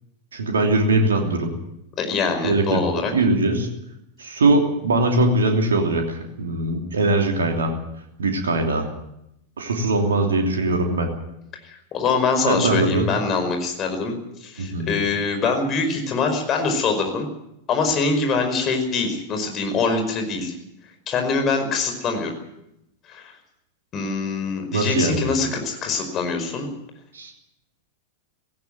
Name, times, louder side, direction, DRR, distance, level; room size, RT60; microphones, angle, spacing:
voice 1, 0.3-1.5 2.4-2.8 3.1-3.7 4.2-7.8 8.2-8.9 9.6-11.1 12.5-13.1 14.6-14.9 24.7-25.3 27.1-27.3, right 2 dB, 70° right, 3 dB, 3.0 m, -21 dB
voice 2, 2.0-3.1 11.6-14.2 14.4-17.3 17.7-20.6 21.1-22.3 23.1-23.2 23.9-26.7, left 4 dB, 30° left, 5 dB, 5.2 m, -24 dB
17.5 x 17.0 x 9.2 m, 0.82 s
figure-of-eight pair, 90°, 0 cm